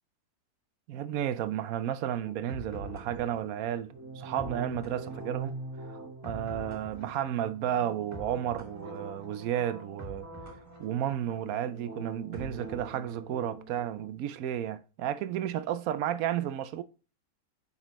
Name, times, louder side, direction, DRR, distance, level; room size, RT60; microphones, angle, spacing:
voice 1, 0.9-5.5 6.2-10.3 10.8-16.8, right 10 dB, 70° right, 0.9 m, -32 dB
sound 1, 2.2-14.1, right 1 dB, 10° right, 1.6 m, -43 dB
8.8 x 5.5 x 3.0 m
omnidirectional pair, 1.7 m